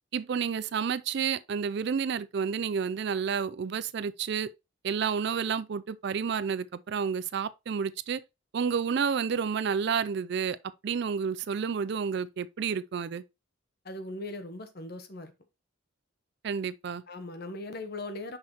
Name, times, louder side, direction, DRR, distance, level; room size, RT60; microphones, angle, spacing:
voice 1, 0.1-4.5 4.8-8.2 8.5-10.6 10.8-13.2 16.4-17.0, right 6 dB, 55° right, 0.4 m, -30 dB
voice 2, 13.8-15.3 17.1-18.4, left 2 dB, 50° left, 1.0 m, -39 dB
6.2 x 5.7 x 2.9 m
head